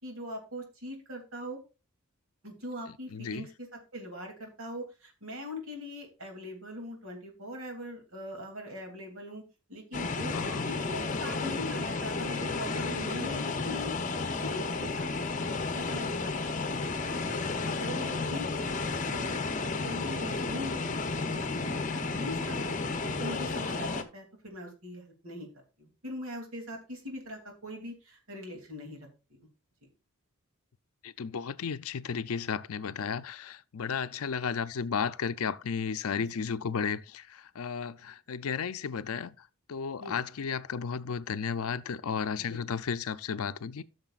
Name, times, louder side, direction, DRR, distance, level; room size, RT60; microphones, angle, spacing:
voice 1, 0.0-1.6 2.4-3.7 3.9-9.4 9.7-10.4 10.6-14.0 14.4-16.8 17.3-18.7 19.1-20.8 21.1-25.5 25.8-29.5 29.8-29.9 36.2-36.3 40.0-40.2 42.4-42.6, left 1 dB, 75° right, 2.9 m, -42 dB
voice 2, 3.1-3.5 10.3-10.7 31.0-43.8, left 6 dB, 85° left, 0.5 m, -34 dB
sound 1, 9.9-24.0, left 3 dB, 35° left, 0.8 m, -32 dB
14.5 x 6.6 x 2.4 m
head